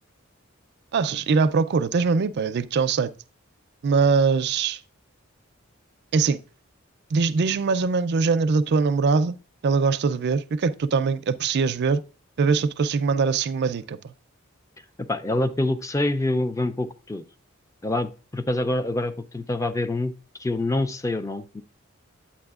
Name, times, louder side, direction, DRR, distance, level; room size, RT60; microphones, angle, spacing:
voice 1, 0.9-3.1 3.8-4.8 6.1-6.4 7.1-9.4 9.6-12.0 12.4-14.1, right 4 dB, 55° right, 0.4 m, -22 dB
voice 2, 15.0-17.2 17.8-20.1 20.4-21.6, left 2 dB, 15° left, 0.4 m, -26 dB
8.7 x 8.5 x 2.4 m
head